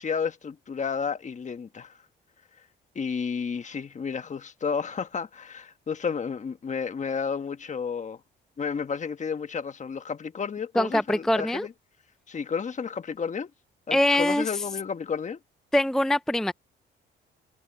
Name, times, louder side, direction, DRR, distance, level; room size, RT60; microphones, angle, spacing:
voice 1, 0.0-2.0 2.9-8.2 8.6-11.7 12.3-13.5 13.9-15.4, left 6 dB, 35° left, 1.4 m, -31 dB
voice 2, 10.8-11.7 13.9-14.6 15.7-16.5, left 1 dB, ahead, 0.5 m, -23 dB
cardioid pair, 90°, 20 cm